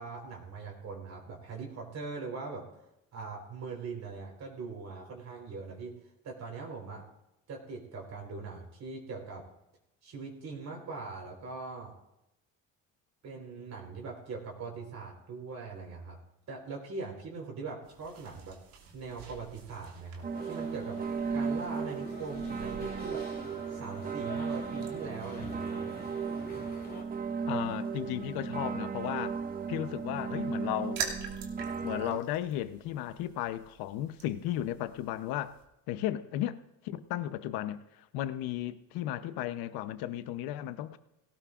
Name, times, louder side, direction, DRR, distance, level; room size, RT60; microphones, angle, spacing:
voice 1, 0.0-2.7 3.1-5.9 6.2-7.0 7.5-9.4 10.0-11.9 13.2-16.2 16.5-18.6 18.9-21.0 21.3-23.2 23.7-25.8, right 4 dB, 50° right, 4.2 m, -41 dB
sound 1, 17.8-35.6, right 6 dB, 70° right, 2.7 m, -48 dB
sound 2, 20.2-32.2, right 5 dB, 25° right, 0.6 m, -36 dB
sound 3, 20.3-27.0, left 3 dB, 25° left, 2.5 m, -47 dB
voice 2, 27.5-29.4 29.7-31.0 31.8-35.5 35.9-36.6 36.8-41.0, left 12 dB, 80° left, 0.9 m, -35 dB
18.0 x 17.5 x 2.5 m
cardioid pair, 135°, 36 cm